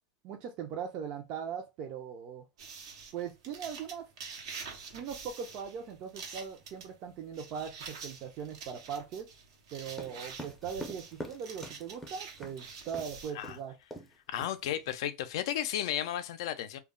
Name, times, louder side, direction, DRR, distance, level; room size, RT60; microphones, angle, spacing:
voice 1, 0.2-2.4 3.1-4.1 4.9-9.3 9.7-13.7, right 7 dB, 45° right, 0.5 m, -40 dB
sound 1, 2.6-13.4, right 5 dB, 85° right, 0.8 m, -47 dB
sound 2, 9.9-12.6 12.9-13.1 13.4-13.6 13.9-14.1 14.4-15.0, equal, 5° left, 0.5 m, -44 dB
voice 2, 14.3-16.8, left 11 dB, 70° left, 0.4 m, -33 dB
2.2 x 2.0 x 3.6 m
supercardioid pair, 140°, 3 cm